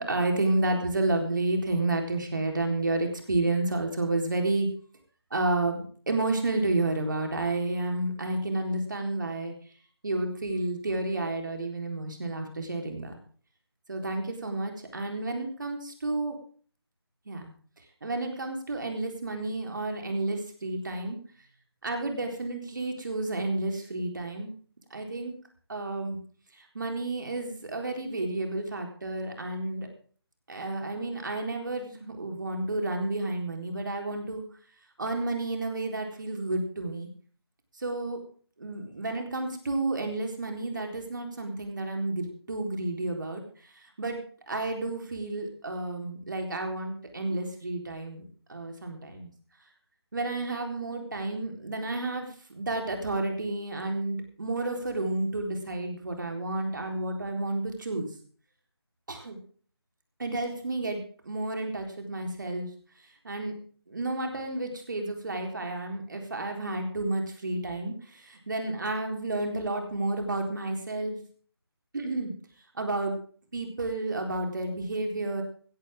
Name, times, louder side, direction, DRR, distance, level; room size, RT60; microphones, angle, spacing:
voice 1, 0.0-4.7 5.3-9.5 10.0-13.1 13.9-16.4 17.3-17.5 18.0-21.2 21.8-24.5 24.9-25.3 25.7-26.2 26.6-29.9 30.5-34.4 35.0-37.1 37.8-38.2 38.6-43.4 43.8-44.2 44.5-49.3 50.1-58.1 59.1-59.4 60.2-62.7 63.2-63.5 63.9-71.2 71.9-72.3 72.7-73.1 73.5-75.4, right 2 dB, 45° right, 3 dB, 4.0 m, -31 dB
16.0 x 14.5 x 3.7 m, 0.43 s
figure-of-eight pair, 160°, 14 cm